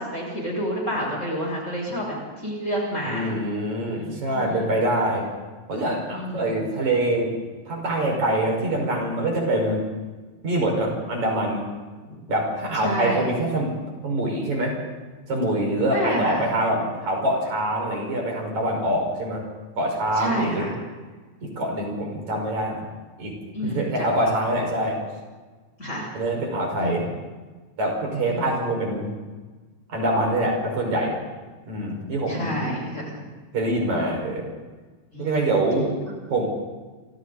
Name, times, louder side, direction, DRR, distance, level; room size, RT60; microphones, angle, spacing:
voice 1, 0.0-3.3 3.9-4.7 6.1-6.6 12.1-12.2 12.8-13.2 15.9-16.8 20.2-20.7 23.5-24.1 25.8-26.1 26.8-27.1 28.2-28.5 32.3-33.1 35.1-35.4, equal, 20° left, -2 dB, 8.0 m, -29 dB
voice 2, 3.0-5.3 5.7-7.3 7.7-9.8 10.4-11.7 12.3-13.7 14.0-14.7 15.3-19.4 19.8-20.7 21.4-22.8 23.2-23.3 23.6-25.0 26.1-27.1 27.8-29.1 29.9-31.2 31.7-32.6 33.5-34.5 35.2-35.9 36.3-36.5, right 1 dB, 65° right, 1 dB, 6.7 m, -24 dB
28.5 x 27.5 x 4.2 m, 1.3 s
omnidirectional pair, 3.5 m